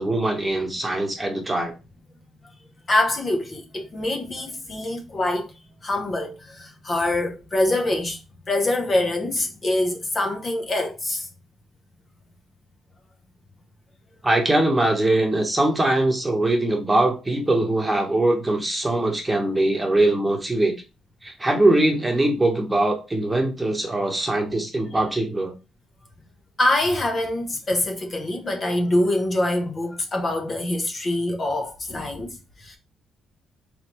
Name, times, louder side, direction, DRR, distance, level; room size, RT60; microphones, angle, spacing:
voice 1, 0.0-1.7 14.2-20.7 21.2-25.5, right 1 dB, 15° right, 1.1 m, -22 dB
voice 2, 2.9-8.2 8.5-11.3 26.6-32.8, left 1 dB, 35° left, 0.9 m, -25 dB
3.7 x 3.3 x 3.0 m
cardioid pair, 90°, 0 cm